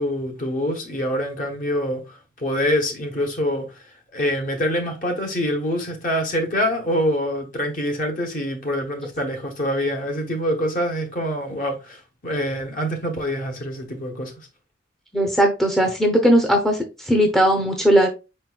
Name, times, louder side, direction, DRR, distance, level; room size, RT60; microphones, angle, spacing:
voice 1, 0.0-3.8 4.1-14.3, equal, 45° left, 1.1 m, -25 dB
voice 2, 15.1-16.8 17.0-18.1, equal, ahead, 0.6 m, -18 dB
5.1 x 4.3 x 2.2 m
head